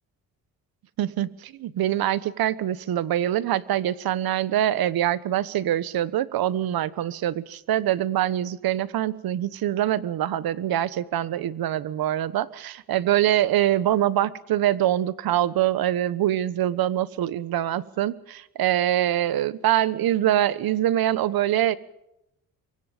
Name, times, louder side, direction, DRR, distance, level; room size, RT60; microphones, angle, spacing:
voice 1, 1.0-21.7, right 12 dB, 75° right, 18 dB, 1.3 m, -24 dB
24.5 x 23.5 x 5.1 m, 0.85 s
cardioid pair, 105°, 36 cm